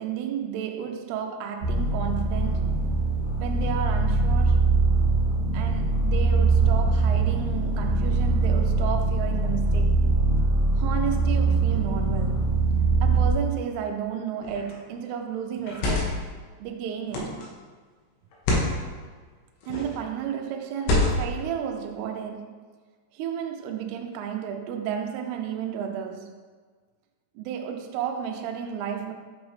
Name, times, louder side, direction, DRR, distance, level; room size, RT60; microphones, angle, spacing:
voice 1, 0.0-2.8 3.4-4.7 5.5-10.0 10.7-12.5 13.0-16.2 16.6-17.4 19.7-22.7 23.1-26.4 27.4-29.1, right 8 dB, 80° right, 2.4 m, -32 dB
sound 1, 1.6-13.3, right 3 dB, 50° right, 2.6 m, -22 dB
sound 2, 14.4-14.7 15.6-16.3 17.1-17.5 18.3-18.7 19.6-20.0 20.8-21.4, left 2 dB, 75° left, 3.1 m, -26 dB
7.9 x 5.0 x 3.2 m
omnidirectional pair, 5.0 m